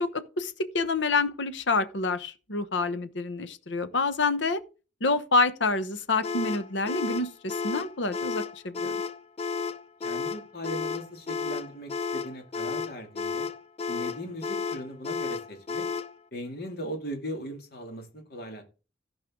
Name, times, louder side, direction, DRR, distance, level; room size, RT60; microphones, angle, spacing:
voice 1, 0.0-4.6 5.0-9.0, left 3 dB, 75° left, 1.0 m, -27 dB
sound 1, 6.2-16.2, left 5 dB, 35° left, 0.4 m, -32 dB
voice 2, 10.0-13.5 13.9-15.9 16.3-18.6, equal, 55° left, 2.5 m, -38 dB
15.0 x 5.4 x 3.7 m
head